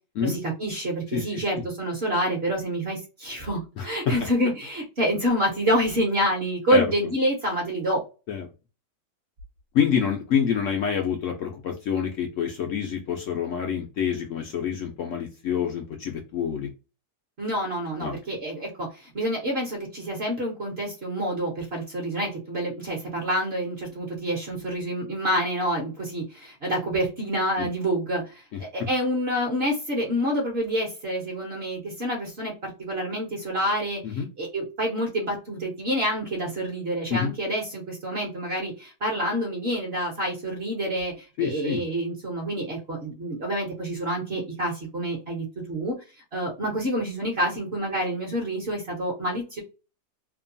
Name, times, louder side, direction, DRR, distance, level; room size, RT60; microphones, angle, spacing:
voice 1, 0.2-8.0 17.4-41.1 41.4-45.9 46.3-49.6, equal, 50° right, -1 dB, 0.9 m, -27 dB
voice 2, 1.1-1.7 3.8-3.9 6.7-6.9 8.3-8.5 9.7-16.7 18.0-18.2 27.6-27.7 28.5-28.9 34.0-34.3 37.1-37.3 41.4-41.8, left 8 dB, 70° left, 2 dB, 0.7 m, -27 dB
2.8 x 2.2 x 2.5 m, 0.31 s
omnidirectional pair, 1.8 m